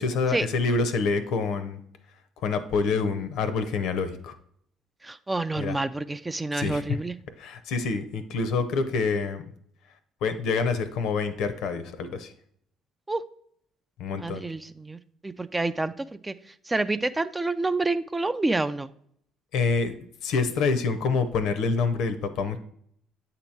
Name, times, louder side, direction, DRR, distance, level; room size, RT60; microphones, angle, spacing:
voice 1, 0.0-1.8 2.4-4.4 5.6-5.8 6.5-7.0 7.4-9.4 10.2-12.3 14.0-14.4 19.5-19.9 20.2-22.6, left 4 dB, 65° left, 11 dB, 0.6 m, -26 dB
voice 2, 5.0-7.1 13.1-13.2 14.2-15.0 15.2-16.3 16.7-18.9, right 2 dB, 15° right, 12 dB, 0.3 m, -28 dB
8.2 x 2.9 x 4.5 m, 0.67 s
hypercardioid pair, 55°, 0 cm